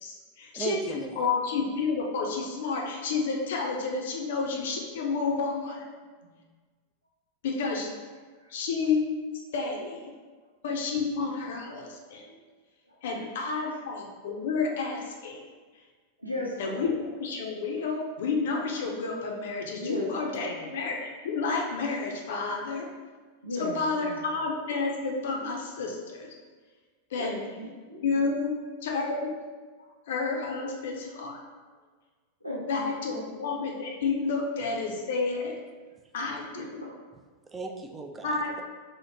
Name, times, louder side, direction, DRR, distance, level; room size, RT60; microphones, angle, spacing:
voice 1, 0.0-5.9 7.4-7.9 8.5-9.1 9.5-10.1 10.6-12.2 13.0-15.4 16.6-22.9 23.5-26.3 27.1-27.3 28.0-28.5 28.8-29.3 30.1-31.4 32.7-35.5 36.1-36.8 38.2-38.5, left 4 dB, 55° left, 0 dB, 0.5 m, -30 dB
voice 2, 0.5-1.3 37.5-38.6, right 3 dB, 15° right, 4 dB, 0.3 m, -36 dB
voice 3, 12.9-13.3 16.2-16.9 19.7-20.7 23.4-24.2 27.1-28.1 29.8-29.9 32.4-33.3 36.5-37.0, left 1 dB, 90° right, -4 dB, 0.5 m, -37 dB
2.9 x 2.1 x 3.8 m, 1.4 s
figure-of-eight pair, 90°, 0 cm